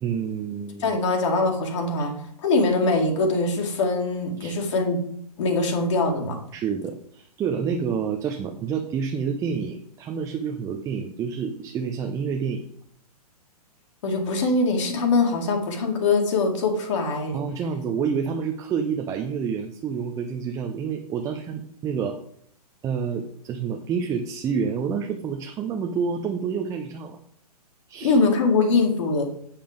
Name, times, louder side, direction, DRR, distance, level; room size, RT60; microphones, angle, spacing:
voice 1, 0.0-1.0 4.4-4.5 6.5-12.6 17.3-22.2 22.8-27.2 27.9-28.2, right 6 dB, 15° right, 4 dB, 0.7 m, -28 dB
voice 2, 0.8-2.1 2.4-5.0 5.4-6.4 14.0-17.4 28.0-29.2, left 3 dB, 50° left, 1 dB, 2.1 m, -22 dB
8.5 x 5.8 x 5.0 m, 0.64 s
figure-of-eight pair, 115°, 20 cm